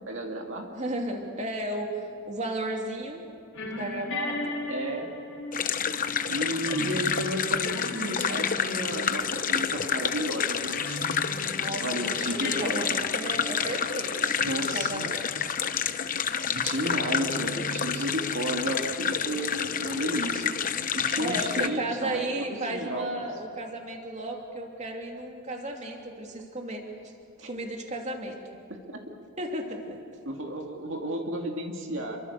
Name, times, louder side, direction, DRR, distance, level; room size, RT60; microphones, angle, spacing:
voice 1, 0.1-0.7 4.7-5.1 6.3-11.0 11.8-12.8 14.4-15.0 16.5-20.5 20.9-22.3 22.7-23.1 27.4-27.5 28.9-29.0 30.2-32.2, right 1 dB, 55° right, 1 dB, 2.6 m, -32 dB
voice 2, 0.7-1.9 2.3-3.2 3.7-4.6 11.5-15.2 21.1-26.8 27.4-28.4 29.4-29.8, right 1 dB, 30° right, 1 dB, 2.9 m, -34 dB
sound 1, 3.5-14.7 15.1-15.3 16.9-18.8, left 1 dB, 70° left, 4.1 m, -38 dB
sound 2, 5.5-21.7, left 7 dB, 40° left, 0.9 m, -29 dB
29.0 x 24.5 x 6.9 m, 2.6 s
head